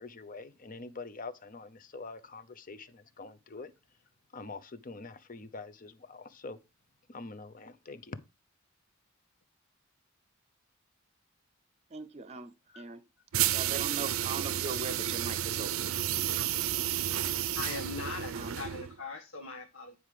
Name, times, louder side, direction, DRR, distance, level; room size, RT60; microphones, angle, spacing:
voice 1, 0.0-3.7 4.3-6.6 7.1-8.2, left 3 dB, 40° left, 0.8 m, -45 dB
voice 2, 11.9-13.0 13.5-15.9 18.3-18.6, right 4 dB, 30° right, 0.7 m, -40 dB
sound 1, 13.3-19.0, right 11 dB, 85° right, 0.5 m, -31 dB
voice 3, 17.5-19.9, left 4 dB, 65° left, 1.4 m, -40 dB
9.3 x 4.8 x 5.0 m
head